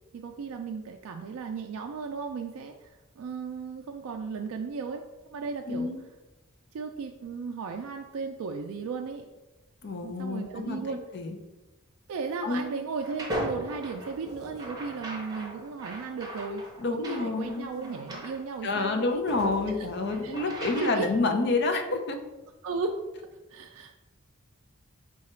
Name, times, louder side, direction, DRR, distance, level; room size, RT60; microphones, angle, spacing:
voice 1, 0.1-5.0 5.3-5.9 6.7-9.3 10.0-11.0 12.1-19.1 19.7-19.9 20.2-20.3 20.6-21.1 22.6-23.9, right 4 dB, 75° right, 3 dB, 0.3 m, -36 dB
voice 2, 5.7-6.0 9.8-11.4 12.4-12.8 16.8-17.7 18.6-22.2, left 3 dB, 50° left, 4 dB, 0.5 m, -28 dB
sound 1, 13.0-18.4 18.9-19.0 19.3-21.0, right 1 dB, 20° right, 0.7 m, -38 dB
4.8 x 2.3 x 4.2 m, 1.1 s
head